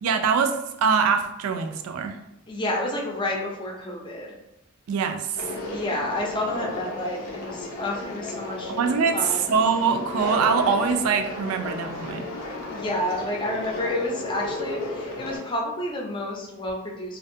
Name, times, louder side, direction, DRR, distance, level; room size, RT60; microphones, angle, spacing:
voice 1, 0.0-2.1 4.9-5.4 8.8-12.3, right 6 dB, 90° right, 6 dB, 0.3 m, -23 dB
voice 2, 2.5-4.3 5.6-8.7 9.1-9.4 12.7-17.2, left 1 dB, 25° left, -1 dB, 0.5 m, -30 dB
Conversation, 5.4-15.4, left 2 dB, 80° left, 0.6 m, -34 dB
2.5 x 2.2 x 2.6 m, 0.88 s
head